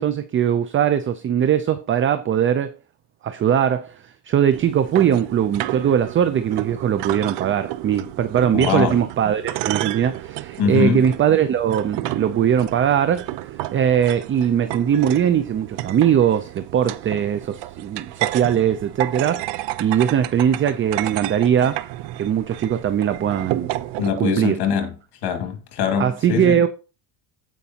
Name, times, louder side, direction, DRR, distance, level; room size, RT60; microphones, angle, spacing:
voice 1, 0.0-2.8 3.2-13.3 13.7-21.8 22.2-23.7 24.2-24.6 26.0-26.7, right 9 dB, 25° right, 0.5 m, -20 dB
sound 1, 4.5-24.1, right 15 dB, 65° right, 0.7 m, -31 dB
voice 2, 8.5-9.0 10.6-11.0 24.0-24.9 25.2-26.6, left 7 dB, 55° left, 2.4 m, -22 dB
15.5 x 5.3 x 2.8 m
cardioid pair, 125°, 47 cm